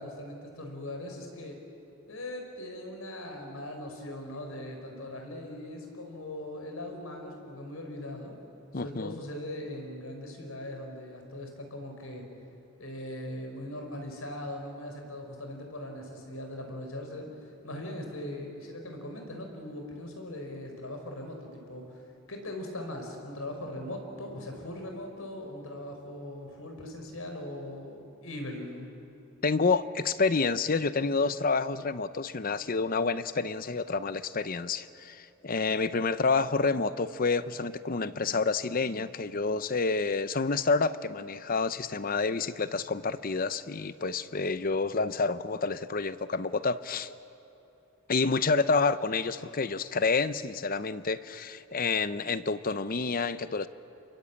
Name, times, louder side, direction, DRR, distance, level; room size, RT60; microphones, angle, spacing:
voice 1, 0.0-1.6 2.1-8.3 8.7-12.3 12.8-17.3 17.6-22.0 22.3-28.9, left 1 dB, 80° left, 3 dB, 4.9 m, -40 dB
voice 2, 8.7-9.2 29.4-47.1 48.1-53.7, left 4 dB, 40° left, 14 dB, 0.7 m, -28 dB
28.5 x 22.0 x 8.5 m, 2.9 s
head